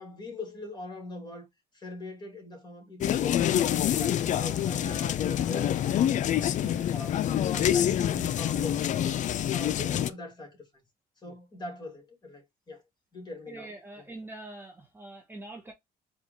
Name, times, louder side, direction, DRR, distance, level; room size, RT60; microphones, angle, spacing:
voice 1, 0.0-1.5 1.7-7.2 7.5-10.7 11.2-12.8 13.1-13.7, left 2 dB, 25° left, 2.1 m, -42 dB
sound 1, 3.0-10.1, left 10 dB, 45° left, 0.4 m, -26 dB
sound 2, 3.4-8.5, equal, 5° left, 1.8 m, -55 dB
voice 2, 13.5-15.7, right 2 dB, 10° right, 0.9 m, -44 dB
4.4 x 2.4 x 4.0 m
cardioid pair, 110°, 17 cm